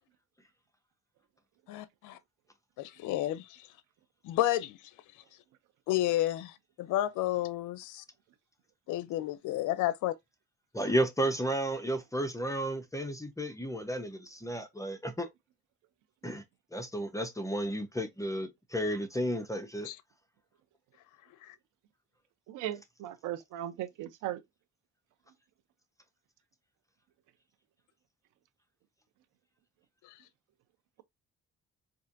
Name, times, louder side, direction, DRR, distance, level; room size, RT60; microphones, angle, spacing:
voice 1, 1.7-2.2 2.8-3.7 4.2-4.9 5.9-8.0 8.9-10.1 19.8-20.0 21.4-21.6 30.0-30.2, left 14 dB, 85° left, 0.5 m, -31 dB
voice 2, 10.7-15.3 16.2-16.4 16.7-19.9, right 1 dB, 10° left, 0.8 m, -32 dB
voice 3, 22.5-24.4, right 13 dB, 90° right, 0.6 m, -37 dB
4.3 x 2.6 x 2.5 m
cardioid pair, 90°, 30 cm